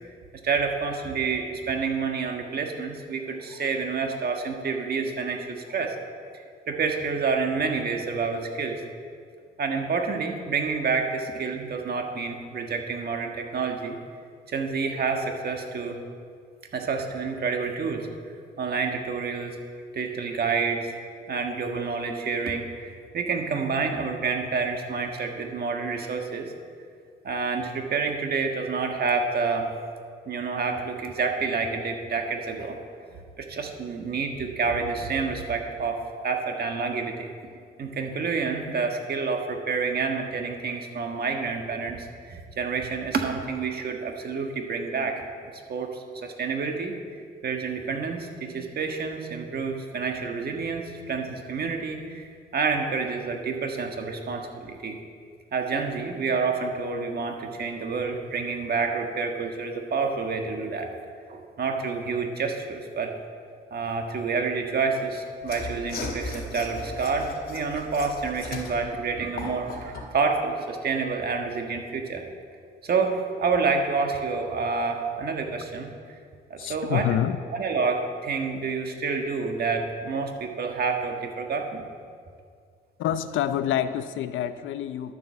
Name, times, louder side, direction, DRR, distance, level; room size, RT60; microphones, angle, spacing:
voice 1, 0.4-5.9 6.7-8.8 9.6-14.0 14.5-16.0 16.7-18.1 18.6-19.6 19.9-20.9 21.3-26.5 27.2-29.8 30.3-32.8 33.4-37.3 37.8-45.2 45.7-47.0 47.4-55.0 55.5-60.9 61.3-63.1 63.7-72.2 72.8-75.9 76.5-77.1 77.5-81.9, right 4 dB, 50° right, 3 dB, 1.6 m, -28 dB
Mechanisms / Sawing, 65.4-70.1, left 3 dB, 50° left, 2.0 m, -37 dB
voice 2, 76.6-77.4 83.0-85.1, left 11 dB, 80° left, 12 dB, 0.6 m, -27 dB
11.0 x 7.6 x 7.0 m, 2.2 s
cardioid pair, 90°, 20 cm